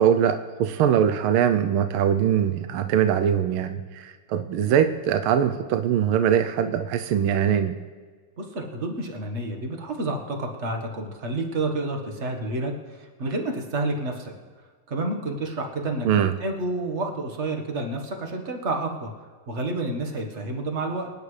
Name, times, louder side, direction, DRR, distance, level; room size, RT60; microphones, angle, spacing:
voice 1, 0.0-7.8 16.0-16.3, right 9 dB, 80° right, 8 dB, 1.5 m, -22 dB
voice 2, 8.4-14.3 14.9-19.1 19.5-21.1, right 2 dB, 35° right, 3 dB, 1.5 m, -29 dB
25.5 x 9.4 x 3.3 m, 1.6 s
omnidirectional pair, 2.4 m